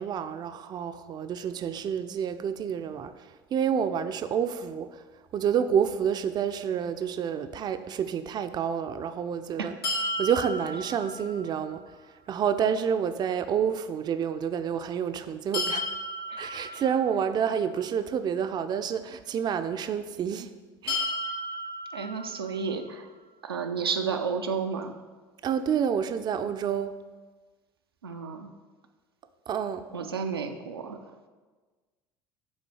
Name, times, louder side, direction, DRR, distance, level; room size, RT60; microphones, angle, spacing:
voice 1, 0.0-5.0 5.3-9.7 10.2-11.8 12.3-15.9 16.4-20.5 20.8-21.1 25.4-26.9 29.5-29.9, right 8 dB, 35° right, 10 dB, 0.4 m, -29 dB
sound 1, 9.8-11.8 15.5-17.6 20.9-22.9, left 1 dB, 85° left, 1.8 m, -34 dB
voice 2, 21.9-23.1 23.4-25.0 28.0-28.5 29.9-31.1, right 5 dB, 90° right, 4 dB, 0.5 m, -32 dB
6.3 x 3.9 x 6.2 m, 1.3 s
hypercardioid pair, 70°, 12 cm